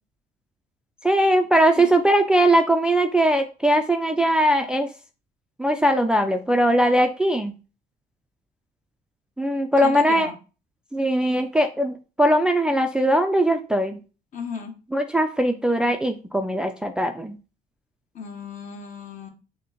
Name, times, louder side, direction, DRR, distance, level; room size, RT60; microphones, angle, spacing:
voice 1, 1.0-4.9 5.6-7.5 9.4-10.3 10.9-14.0 14.9-17.4, right 1 dB, 5° right, 5 dB, 0.3 m, -20 dB
voice 2, 9.8-10.3 14.3-14.8 18.1-19.3, left 5 dB, 50° left, 3 dB, 1.1 m, -35 dB
6.0 x 2.1 x 2.9 m, 0.34 s
cardioid pair, 110°, 17 cm